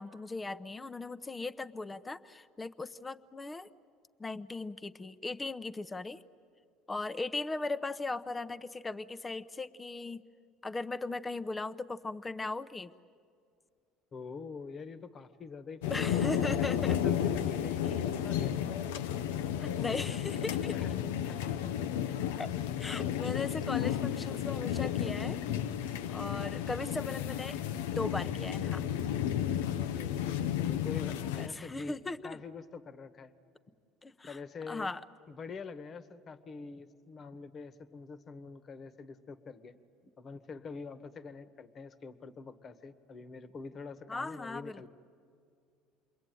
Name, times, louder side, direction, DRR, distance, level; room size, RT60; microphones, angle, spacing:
voice 1, 0.0-3.7 4.2-6.2 6.9-10.2 10.6-12.9 15.9-17.0 17.8-18.0 19.6-20.8 22.4-22.5 22.8-25.4 26.1-27.6 27.9-28.8 31.4-32.4 34.0-34.4 34.7-35.0 44.1-44.9, left 3 dB, 20° left, 10 dB, 0.8 m, -38 dB
voice 2, 14.1-18.7 20.7-21.4 29.9-33.3 34.2-34.9 35.3-39.8 40.2-44.9, left 4 dB, 40° left, 12 dB, 1.4 m, -45 dB
sound 1, 15.8-31.5, left 10 dB, 85° left, 0.8 m, -32 dB
28.5 x 22.0 x 9.3 m, 2.3 s
supercardioid pair, 85°, 0 cm